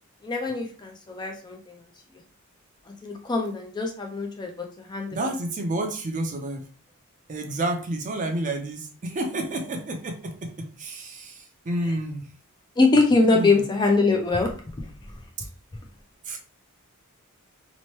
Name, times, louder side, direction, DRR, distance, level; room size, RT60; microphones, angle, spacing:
voice 1, 0.2-1.8 3.0-5.2 12.8-14.5, left 3 dB, 20° left, 2 dB, 0.4 m, -23 dB
voice 2, 5.1-6.6 7.3-12.3 13.3-13.6 16.3-16.4, right 1 dB, 35° right, 3 dB, 0.5 m, -30 dB
3.0 x 2.1 x 3.0 m, 0.39 s
head